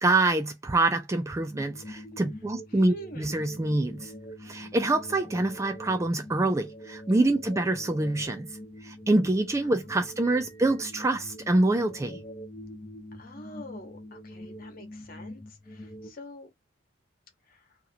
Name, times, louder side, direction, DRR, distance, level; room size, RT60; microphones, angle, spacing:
voice 1, 0.0-4.1 4.4-8.5 8.8-12.2, right 2 dB, 15° right, 0.3 m, -26 dB
sound 1, 1.3-16.1, equal, 15° left, 0.7 m, -44 dB
voice 2, 2.7-3.6 7.1-7.4 9.7-10.4 13.1-16.5 17.5-17.7, equal, 45° left, 1.2 m, -46 dB
2.9 x 2.5 x 3.9 m
head